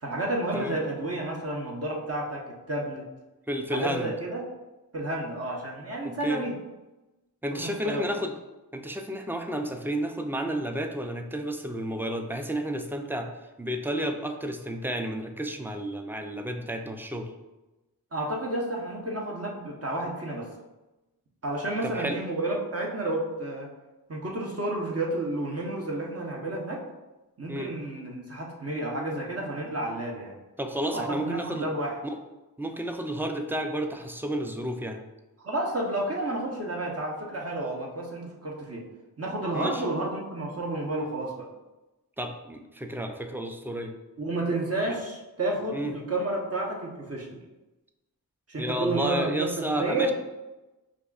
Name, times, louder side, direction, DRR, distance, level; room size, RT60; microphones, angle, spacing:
voice 1, 0.0-3.0 3.7-4.4 4.9-6.6 7.5-8.0 18.1-20.6 21.4-23.7 24.1-26.8 27.4-30.4 30.9-32.0 35.4-38.9 39.2-41.5 44.2-47.3 48.5-50.1, right 1 dB, 40° right, -2 dB, 0.9 m, -31 dB
voice 2, 3.5-4.1 6.2-6.4 7.4-8.3 8.7-13.3 13.6-17.3 21.8-22.2 27.5-27.7 30.6-31.7 32.6-35.0 39.5-39.8 42.2-43.9 45.7-45.9 48.6-50.1, right 1 dB, 5° right, 5 dB, 0.4 m, -31 dB
5.3 x 2.5 x 2.4 m, 1.1 s
cardioid pair, 40°, 37 cm